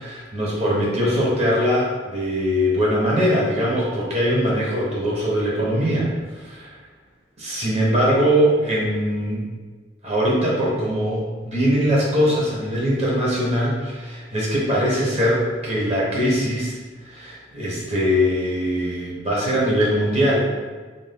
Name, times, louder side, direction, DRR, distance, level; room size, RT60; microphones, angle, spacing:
voice 1, 0.0-6.8 7.4-9.5 10.0-16.8 17.0-20.5, equal, 35° right, -5 dB, 0.8 m, -21 dB
2.6 x 2.3 x 3.4 m, 1.4 s
head